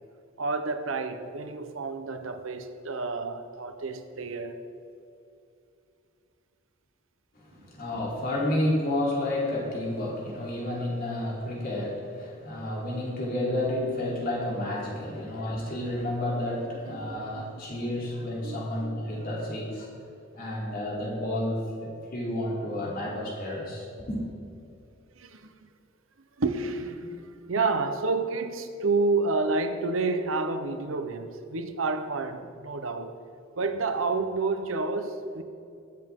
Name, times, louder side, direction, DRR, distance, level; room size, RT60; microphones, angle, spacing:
voice 1, 0.4-4.6 7.6-7.7 14.9-15.1 17.0-17.4 18.4-18.6 25.2-25.5 26.4-33.1 33.6-35.4, right 3 dB, 80° right, 0.9 m, -29 dB
voice 2, 7.4-19.9 20.3-24.2, left 1 dB, 50° left, 3.3 m, -31 dB
22.5 x 7.6 x 3.7 m
head